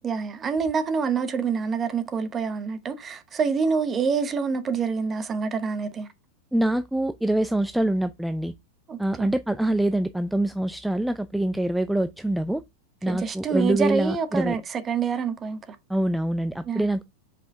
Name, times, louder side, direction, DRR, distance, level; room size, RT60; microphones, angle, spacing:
voice 1, 0.0-6.1 8.9-9.3 13.1-15.8 16.6-16.9, right 5 dB, 25° right, 0.9 m, -27 dB
voice 2, 6.5-8.5 9.0-12.6 13.0-14.6 15.9-17.0, right 1 dB, 5° right, 0.3 m, -25 dB
5.5 x 4.9 x 3.5 m
figure-of-eight pair, 90°, 0 cm